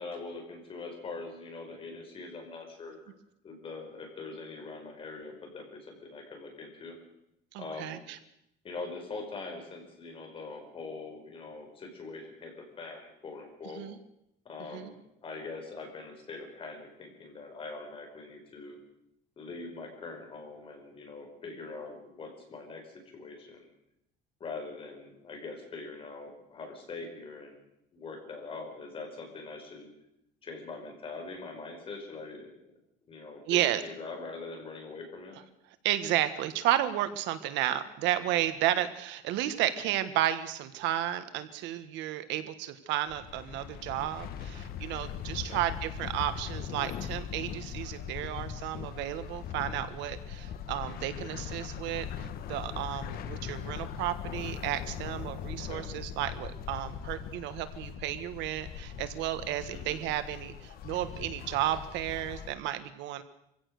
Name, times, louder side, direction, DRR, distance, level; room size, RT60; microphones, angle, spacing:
voice 1, 0.0-3.1 3.4-7.0 7.6-8.0 8.6-13.8 14.4-18.8 19.4-23.7 24.4-27.6 27.9-29.9 30.4-32.7 33.1-35.4 45.3-45.6 55.5-55.9 59.7-60.0, left 3 dB, 25° left, 3 dB, 5.1 m, -43 dB
voice 2, 7.5-8.0 13.8-14.0 14.7-14.9 33.5-33.8 35.8-63.2, right 13 dB, 70° right, 11 dB, 1.6 m, -32 dB
sound 1, 43.1-62.5, left 8 dB, 50° left, 1.4 m, -40 dB
25.5 x 16.5 x 6.6 m, 0.80 s
cardioid pair, 155°, 20 cm